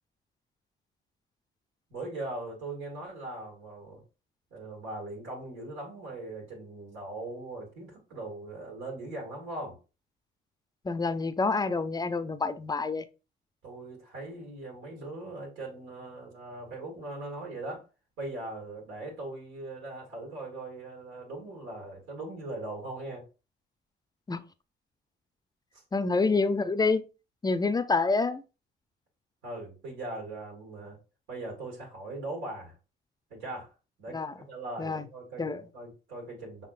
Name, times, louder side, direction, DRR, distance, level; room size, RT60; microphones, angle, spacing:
voice 1, 1.9-4.0 4.5-9.8 13.6-17.8 18.2-23.2 29.4-31.0 31.3-32.8 33.3-33.7 34.0-36.7, right 2 dB, 90° right, 2.2 m, -40 dB
voice 2, 10.8-13.0 24.3-24.5 25.9-27.0 27.4-28.4 34.1-34.3 34.8-35.1 35.4-35.6, left 3 dB, 20° left, 0.5 m, -27 dB
5.8 x 3.7 x 2.5 m
cardioid pair, 90°, 20 cm